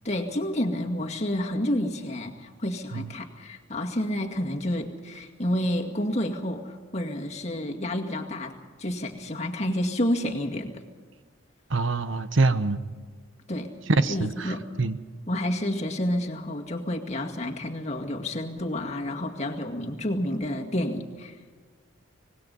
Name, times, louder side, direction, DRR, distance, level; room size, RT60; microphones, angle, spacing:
voice 1, 0.0-10.7 13.5-13.7 14.1-14.6 15.3-21.4, left 1 dB, 30° left, 2 dB, 2.1 m, -29 dB
voice 2, 11.7-12.8 13.9-15.0, right 3 dB, 65° right, 12 dB, 1.0 m, -25 dB
25.0 x 20.0 x 5.5 m, 1.5 s
head